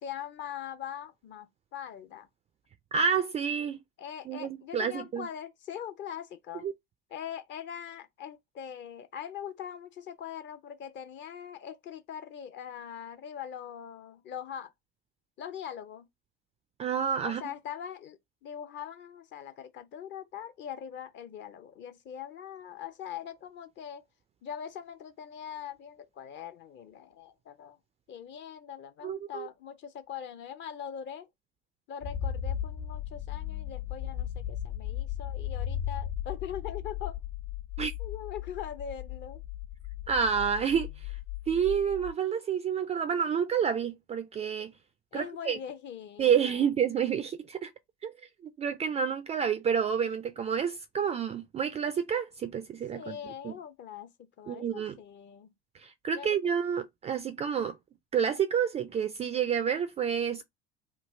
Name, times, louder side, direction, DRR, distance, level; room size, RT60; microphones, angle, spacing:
voice 1, 0.0-2.3 4.0-6.7 7.1-14.7 15.4-16.1 17.2-24.0 24.4-27.8 28.1-31.3 31.9-37.2 38.0-39.4 45.1-46.6 52.9-55.5 56.1-56.3, left 9 dB, 35° left, 0.6 m, -42 dB
voice 2, 2.9-3.8 4.3-5.3 6.6-6.7 16.8-17.4 29.0-29.5 37.8-37.9 40.1-41.1 41.5-44.7 45.1-45.6 46.2-47.7 48.0-48.1 48.6-53.2 53.4-53.5 54.5-55.0 55.8-57.8 58.1-60.4, right 7 dB, 20° right, 0.3 m, -29 dB
sound 1, 32.0-42.1, left 10 dB, 55° left, 1.4 m, -36 dB
3.2 x 2.3 x 3.2 m
figure-of-eight pair, 70°, 32 cm